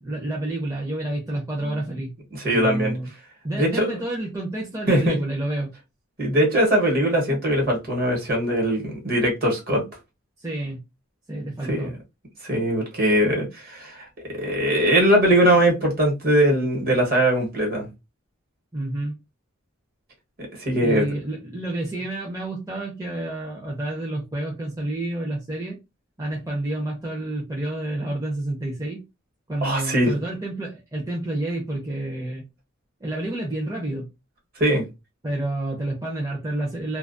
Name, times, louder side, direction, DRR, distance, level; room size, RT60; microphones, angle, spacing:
voice 1, 0.0-2.1 2.5-3.1 3.4-5.7 10.4-10.8 11.3-11.9 18.7-19.2 20.8-25.8 26.2-29.0 29.5-32.4 33.0-34.1 35.2-37.0, right 1 dB, 15° right, 0.5 m, -29 dB
voice 2, 2.4-2.9 3.5-3.9 4.9-5.2 6.2-9.8 11.7-11.9 12.4-14.1 14.3-17.9 20.5-21.1 29.6-30.1 34.6-34.8, right 1 dB, 45° right, 1.1 m, -21 dB
2.3 x 2.2 x 2.5 m
head